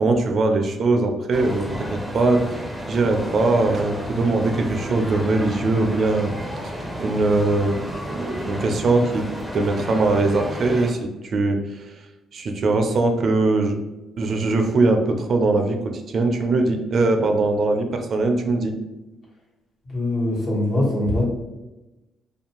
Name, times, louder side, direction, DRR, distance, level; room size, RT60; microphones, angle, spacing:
voice 1, 0.0-2.6 2.9-6.3 6.6-7.8 8.1-9.3 9.5-12.0 12.3-13.8 14.2-18.7, right 2 dB, 55° right, 5 dB, 0.4 m, -21 dB
sound 1, 1.3-10.9, equal, ahead, 0.5 m, -32 dB
voice 2, 19.8-21.3, left 1 dB, 60° left, -6 dB, 1.3 m, -22 dB
2.5 x 2.2 x 2.9 m, 1.0 s
cardioid pair, 90°, 0 cm